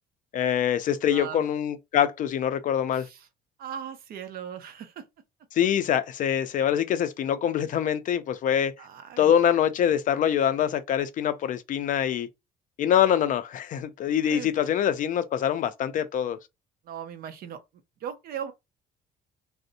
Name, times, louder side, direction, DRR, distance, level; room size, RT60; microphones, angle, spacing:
voice 1, 0.3-3.1 5.5-8.7 9.2-12.3 12.8-16.4, left 9 dB, 50° left, 0.4 m, -24 dB
voice 2, 1.1-1.5 2.9-3.3 3.6-5.0 6.5-6.7 8.8-9.3 14.2-14.7 16.8-17.6 18.0-18.5, right 8 dB, 60° right, 0.6 m, -38 dB
2.6 x 2.0 x 2.5 m
cardioid pair, 110°, 17 cm